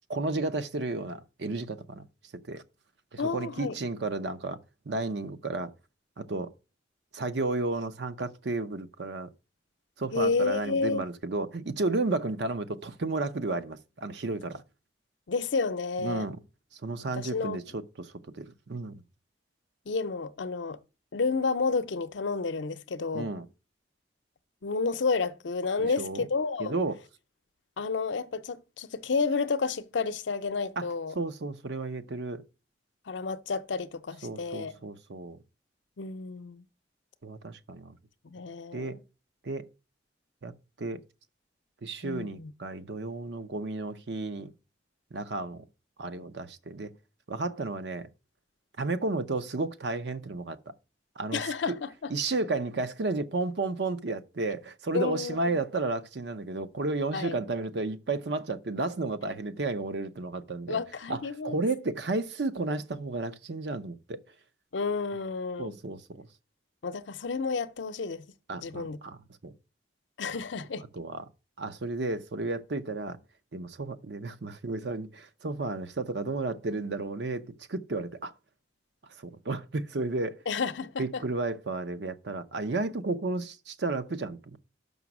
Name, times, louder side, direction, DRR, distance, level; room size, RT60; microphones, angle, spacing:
voice 1, 0.1-2.0 2.5-2.6 3.1-4.6 4.9-5.7 6.2-6.5 7.1-9.3 10.0-14.6 16.0-16.4 16.7-19.0 23.1-23.5 25.8-26.3 26.6-27.0 30.8-30.9 31.1-32.4 34.2-35.4 37.2-37.9 38.7-39.0 39.4-39.6 40.4-40.5 40.8-41.0 41.8-44.5 45.1-45.6 46.0-46.9 47.3-48.1 48.8-50.7 51.2-51.7 52.1-60.8 61.1-61.2 61.4-64.2 65.6-66.3 68.5-69.2 69.4-69.5 70.9-71.2 71.6-73.2 73.5-77.4 77.7-78.3 79.2-80.4 81.0-84.6, right 3 dB, 70° right, 0.7 m, -32 dB
voice 2, 3.2-3.8 10.1-11.0 15.3-16.3 17.1-17.6 19.9-20.8 21.1-23.3 24.6-26.7 27.8-31.2 33.1-34.7 36.0-36.6 38.2-39.0 42.0-42.5 51.3-52.1 54.9-55.5 57.1-57.4 60.7-61.6 64.7-65.8 66.8-68.3 68.6-69.0 70.2-70.8 80.5-81.2, left 4 dB, 85° left, 0.6 m, -30 dB
6.1 x 5.4 x 6.0 m
head